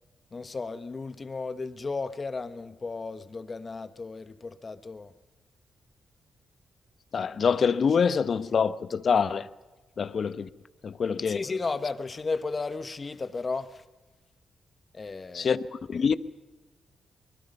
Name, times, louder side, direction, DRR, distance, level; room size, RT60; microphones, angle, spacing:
voice 1, 0.3-5.1 11.3-13.8 14.9-15.5, left 4 dB, 40° left, 1.3 m, -34 dB
voice 2, 7.1-9.5 10.0-10.5 10.8-11.4 15.3-16.2, left 6 dB, 60° left, 0.9 m, -25 dB
24.5 x 20.5 x 5.5 m
cardioid pair, 65°, 0 cm